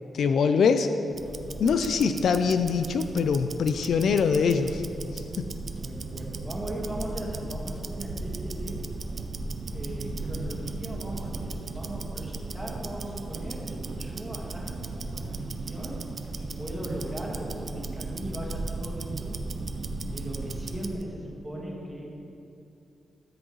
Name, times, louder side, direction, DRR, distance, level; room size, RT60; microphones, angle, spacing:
voice 1, 0.1-0.9 1.6-4.8 5.1-5.5, left 5 dB, 70° left, 8 dB, 0.4 m, -23 dB
Tick-tock, 1.1-21.0, right 3 dB, 45° right, 0.4 m, -36 dB
voice 2, 5.7-8.8 9.7-16.0 16.4-19.4 20.1-22.1, right 1 dB, 5° right, -4 dB, 1.6 m, -38 dB
13.0 x 7.8 x 3.1 m, 2.6 s
wide cardioid pair, 170°, 0 cm